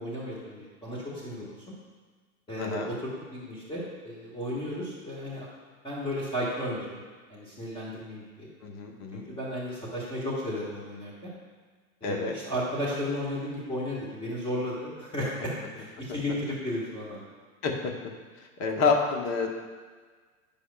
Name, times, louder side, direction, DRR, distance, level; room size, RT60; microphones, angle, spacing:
voice 1, 0.0-1.7 2.5-5.5 5.8-7.0 7.3-8.5 9.1-11.3 12.0-17.2, left 1 dB, 10° left, -7 dB, 1.6 m, -34 dB
voice 2, 2.6-2.9 8.6-9.3 12.0-12.3 17.6-17.9 18.6-19.5, left 4 dB, 40° left, 1 dB, 1.1 m, -28 dB
9.9 x 5.4 x 2.3 m, 1.5 s
hypercardioid pair, 100°, 41 cm